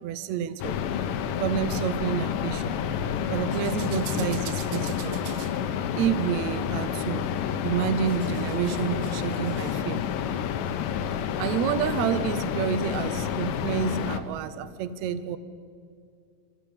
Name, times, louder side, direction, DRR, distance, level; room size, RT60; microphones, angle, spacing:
voice 1, 0.0-0.8 1.4-2.8 3.3-5.5 6.0-7.3 7.6-10.0 11.4-15.4, right 9 dB, 80° right, 13 dB, 1.6 m, -29 dB
sound 1, 0.6-14.2, left 8 dB, 70° left, 2.5 m, -29 dB
27.0 x 15.0 x 8.7 m, 2.3 s
omnidirectional pair, 4.1 m